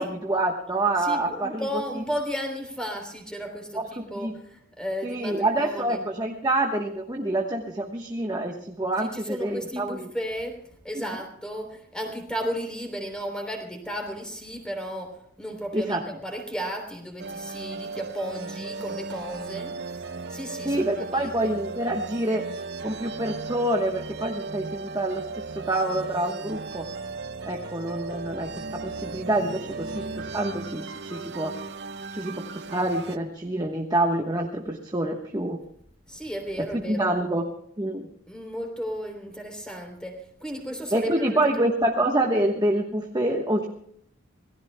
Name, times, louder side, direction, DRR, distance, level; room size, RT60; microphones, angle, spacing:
voice 1, 0.0-1.7 2.0-2.1 3.7-3.9 4.1-4.3 5.0-10.1 15.7-16.0 20.6-22.5 22.8-26.9 27.5-31.6 32.1-35.6 36.7-37.4 37.8-38.1 40.9-43.7, right 1 dB, 20° right, 2 dB, 1.2 m, -27 dB
voice 2, 1.0-6.0 9.0-10.6 10.8-19.7 20.3-21.5 36.1-37.1 38.3-41.7, equal, 5° left, 3 dB, 3.4 m, -34 dB
sound 1, 17.2-33.2, right 4 dB, 55° right, 0.8 m, -36 dB
26.5 x 18.0 x 2.2 m, 0.70 s
head